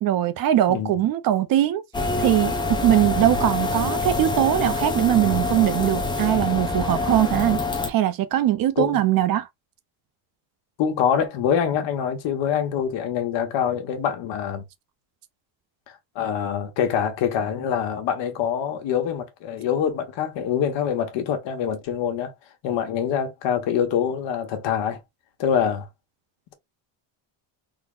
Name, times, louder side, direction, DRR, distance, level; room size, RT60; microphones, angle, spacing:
voice 1, 0.0-1.8 2.2-9.5, right 12 dB, 50° right, 0.4 m, -21 dB
sound 1, 1.9-7.9, left 3 dB, 10° left, 0.6 m, -26 dB
voice 2, 10.8-14.6 16.1-22.3 22.6-25.0 25.4-25.9, left 8 dB, 65° left, 1.1 m, -25 dB
3.9 x 2.0 x 3.7 m
cardioid pair, 155°, 48 cm